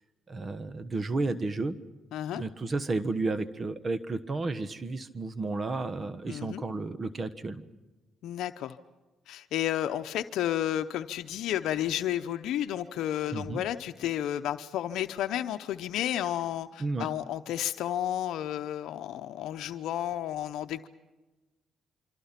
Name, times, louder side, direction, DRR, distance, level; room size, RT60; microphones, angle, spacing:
voice 1, 0.3-1.7 2.4-7.6 13.3-13.6 16.8-17.1, right 3 dB, 35° right, 13 dB, 1.2 m, -32 dB
voice 2, 2.1-2.4 6.3-6.6 8.2-8.8 9.3-20.9, left 11 dB, 85° left, 10 dB, 0.7 m, -32 dB
26.0 x 25.0 x 5.8 m, 1.1 s
cardioid pair, 90°, 0 cm